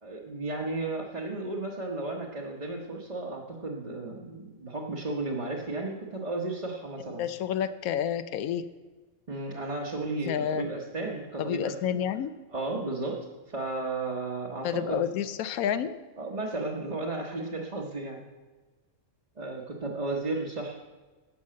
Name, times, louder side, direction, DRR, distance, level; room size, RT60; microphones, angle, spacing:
voice 1, 0.0-7.3 9.3-12.0 12.5-15.1 16.2-18.2 19.4-20.8, right 2 dB, 30° right, -3 dB, 1.0 m, -34 dB
voice 2, 7.2-8.6 10.3-10.7 11.4-12.3 14.6-15.9, left 9 dB, 85° left, 12 dB, 1.0 m, -29 dB
11.5 x 5.5 x 7.5 m, 1.3 s
omnidirectional pair, 1.5 m